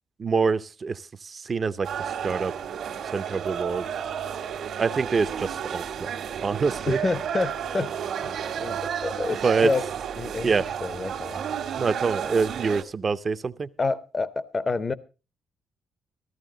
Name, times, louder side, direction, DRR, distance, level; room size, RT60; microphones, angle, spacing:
voice 1, 0.2-1.9 2.2-2.5 3.1-3.9 4.8-6.1 6.4-7.0 9.4-9.7 10.4-10.7 11.8-13.7, right 5 dB, 40° right, 12 dB, 0.6 m, -25 dB
sound 1, 1.8-12.8, right 8 dB, 70° right, 1.6 m, -32 dB
voice 2, 6.9-9.9 10.2-10.5 10.8-11.4 13.8-14.9, left 3 dB, 30° left, 16 dB, 0.7 m, -29 dB
14.0 x 14.0 x 3.8 m, 0.33 s
cardioid pair, 90°, 0 cm